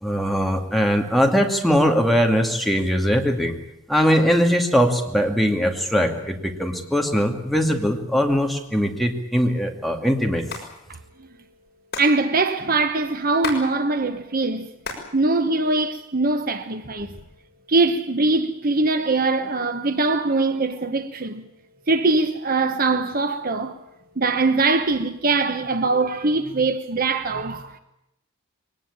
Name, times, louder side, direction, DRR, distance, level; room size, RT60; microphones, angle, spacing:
voice 1, 0.0-3.5 3.9-10.5, equal, ahead, 2.3 m, -21 dB
Hands, 10.5-10.7 10.9-11.0 11.2-13.7 14.0-15.1 15.5-16.2 16.8-17.4, left 4 dB, 50° left, 6.4 m, -34 dB
voice 2, 12.0-14.7 15.1-17.1 17.7-21.5 21.9-23.8 24.2-27.8, right 3 dB, 45° right, 1.1 m, -22 dB
22.5 x 19.0 x 8.8 m
head